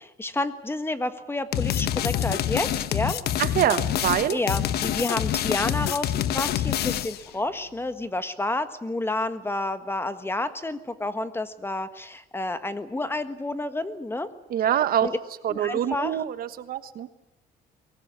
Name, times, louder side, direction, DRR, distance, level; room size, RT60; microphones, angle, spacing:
voice 1, 0.0-3.2 4.3-14.3 15.0-15.2 15.5-16.2, left 2 dB, 15° left, 11 dB, 1.6 m, -30 dB
sound 1, 1.5-7.3, left 11 dB, 70° left, 1.2 m, -26 dB
voice 2, 3.4-4.4 14.5-15.1 15.4-17.1, right 10 dB, 60° right, 12 dB, 1.4 m, -25 dB
23.0 x 18.5 x 9.7 m, 0.86 s
cardioid pair, 110°, 17 cm